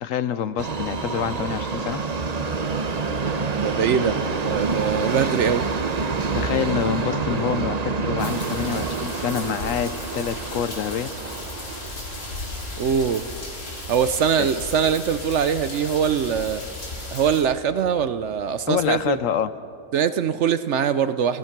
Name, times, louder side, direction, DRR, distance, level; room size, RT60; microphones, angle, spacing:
voice 1, 0.0-2.0 6.3-11.1 14.4-14.5 18.7-19.5, left 8 dB, 70° left, 14 dB, 1.0 m, -26 dB
Subway metro underground, 0.6-14.7 15.0-15.1 15.9-16.0 16.3-16.4 17.0-17.1, right 4 dB, 35° right, 0.8 m, -28 dB
voice 2, 3.5-5.7 12.8-13.3 13.9-16.6 17.1-19.2 19.9-21.4, right 7 dB, 60° right, 13 dB, 0.9 m, -22 dB
sound 1, 3.9-19.3, equal, 25° left, 3.8 m, -50 dB
sound 2, 8.2-17.4, left 2 dB, 85° left, 4.0 m, -35 dB
29.0 x 17.0 x 5.9 m, 2.4 s
omnidirectional pair, 1.5 m